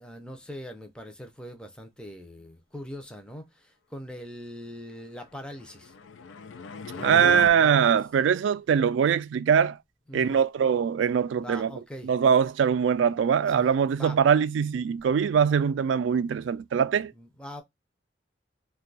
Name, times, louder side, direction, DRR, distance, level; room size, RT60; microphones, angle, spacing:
voice 1, 0.0-6.0 6.3-6.4 6.9-8.0 10.1-10.4 11.4-12.1 13.5-13.7 13.9-14.2 17.1-17.6, equal, 5° left, 0.5 m, -42 dB
sound 1, 5.6-7.5, left 4 dB, 85° left, 0.4 m, -37 dB
voice 2, 7.0-9.8 10.1-11.7 12.0-17.1, right 7 dB, 80° right, 0.3 m, -22 dB
2.6 x 2.3 x 3.9 m
head